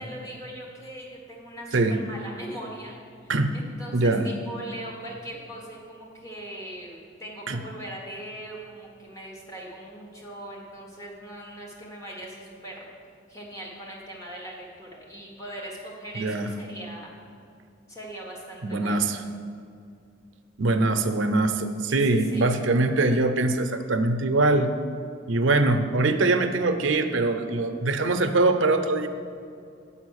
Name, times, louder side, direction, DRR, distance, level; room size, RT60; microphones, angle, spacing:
voice 1, 0.0-2.9 3.2-12.9 13.3-17.1 17.9-19.1 21.8-22.5, right 1 dB, 15° left, -3 dB, 1.4 m, -40 dB
voice 2, 3.9-4.2 7.5-7.6 16.2-16.5 18.6-19.2 20.6-24.7 25.3-29.1, right 2 dB, 80° right, 7 dB, 0.6 m, -23 dB
7.6 x 5.7 x 6.4 m, 2.4 s
head